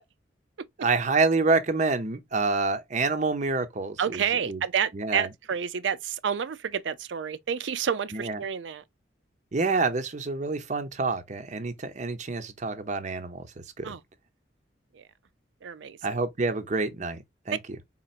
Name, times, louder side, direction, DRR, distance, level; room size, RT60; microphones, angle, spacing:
voice 1, 0.8-4.6 4.9-5.3 8.1-8.4 9.5-14.0 16.0-17.6, right 3 dB, 40° right, 0.7 m, -27 dB
voice 2, 4.0-8.8 13.8-14.0 14.9-15.0 15.6-16.0, right 7 dB, 80° right, 0.5 m, -29 dB
4.3 x 3.7 x 2.4 m
head